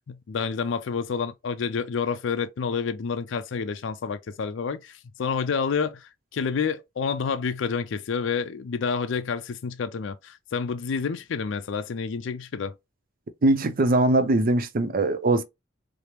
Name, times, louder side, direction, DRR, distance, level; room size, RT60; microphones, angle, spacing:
voice 1, 0.1-12.7, left 5 dB, 70° left, 0.4 m, -29 dB
voice 2, 13.4-15.4, right 2 dB, 50° right, 0.5 m, -21 dB
4.9 x 2.0 x 2.9 m
head